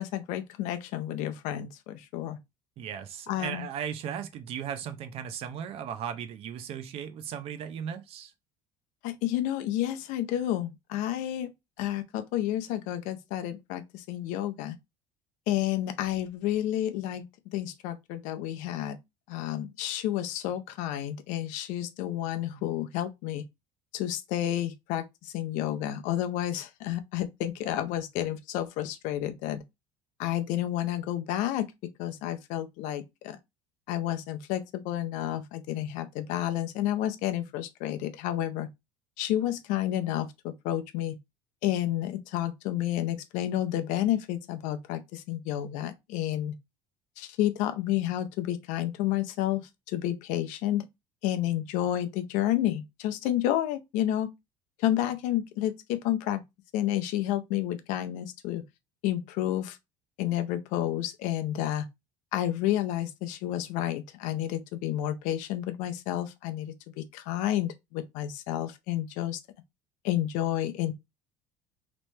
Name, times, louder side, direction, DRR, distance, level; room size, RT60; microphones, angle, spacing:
voice 1, 0.0-2.4 3.3-3.6 9.0-11.5 11.8-14.8 15.5-17.2 17.5-19.0 19.3-23.4 23.9-29.6 30.2-31.7 32.0-33.4 33.9-38.7 39.2-41.2 41.6-46.6 47.2-49.6 49.9-50.8 51.2-54.3 54.8-56.4 56.7-58.6 59.0-59.8 60.2-61.9 62.3-69.4 70.0-70.9, left 12 dB, 65° left, 0.5 m, -30 dB
voice 2, 2.8-8.3, right 8 dB, 45° right, 0.5 m, -36 dB
3.2 x 3.0 x 3.1 m
cardioid pair, 165°, 14 cm